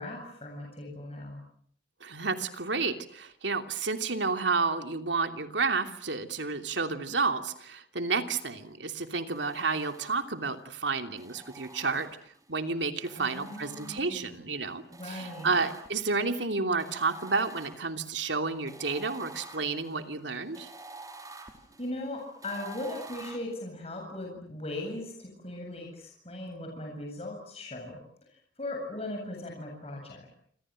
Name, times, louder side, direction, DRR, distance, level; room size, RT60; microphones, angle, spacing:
voice 1, 0.0-1.4 13.1-14.4 14.9-15.6 21.8-28.0 28.3-30.3, left 1 dB, 35° left, 1 dB, 7.9 m, -39 dB
voice 2, 2.0-12.1 12.5-20.7, right 4 dB, 85° right, 7 dB, 3.0 m, -31 dB
sound 1, 9.3-10.6 11.2-12.5 13.0-14.4 14.9-16.2 16.8-23.4, right 3 dB, 20° right, 4.8 m, -49 dB
28.0 x 27.0 x 7.7 m, 0.65 s
head